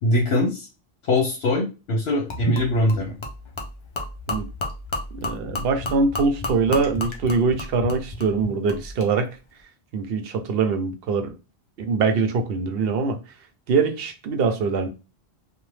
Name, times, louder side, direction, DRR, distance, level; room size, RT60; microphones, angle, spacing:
voice 1, 0.0-0.7 1.1-3.1, left 1 dB, 75° left, 1.0 m, -22 dB
Gurgling / Liquid, 2.3-9.1, left 2 dB, 40° left, 0.5 m, -32 dB
voice 2, 5.1-9.3 9.9-11.4 11.8-13.2 13.7-14.9, right 4 dB, 70° right, 0.8 m, -23 dB
2.8 x 2.1 x 3.2 m
omnidirectional pair, 1.0 m